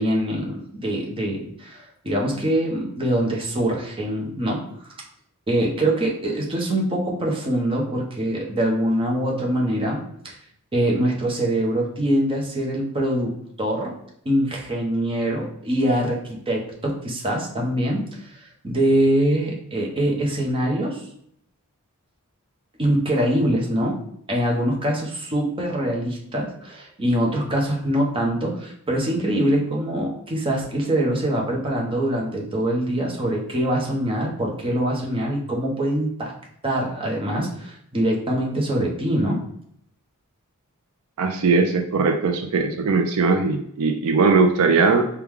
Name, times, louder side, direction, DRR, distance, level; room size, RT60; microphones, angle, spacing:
voice 1, 0.0-5.0 5.5-10.4 10.7-14.0 14.2-21.0 22.8-24.0 24.3-36.3 36.6-39.4, right 1 dB, 25° right, -1 dB, 0.8 m, -24 dB
voice 2, 41.2-45.1, right 4 dB, 75° right, 5 dB, 0.4 m, -19 dB
4.7 x 2.3 x 3.5 m, 0.69 s
head